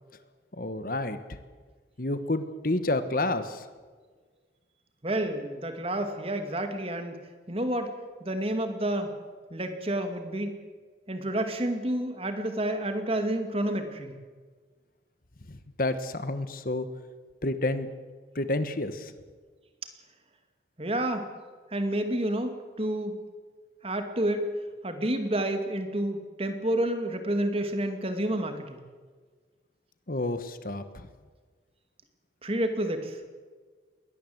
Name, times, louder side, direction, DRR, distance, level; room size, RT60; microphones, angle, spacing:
voice 1, 0.6-1.2 2.0-3.6 15.5-16.9 17.4-17.9 18.3-19.1 30.1-30.8, left 2 dB, 50° left, 11 dB, 1.2 m, -29 dB
voice 2, 5.0-7.2 7.5-7.9 8.2-9.2 9.5-10.5 11.1-14.1 20.8-21.3 21.7-23.2 23.8-24.5 24.8-28.8 32.4-33.2, right 1 dB, 30° right, 7 dB, 2.2 m, -29 dB
21.5 x 18.0 x 7.9 m, 1.5 s
head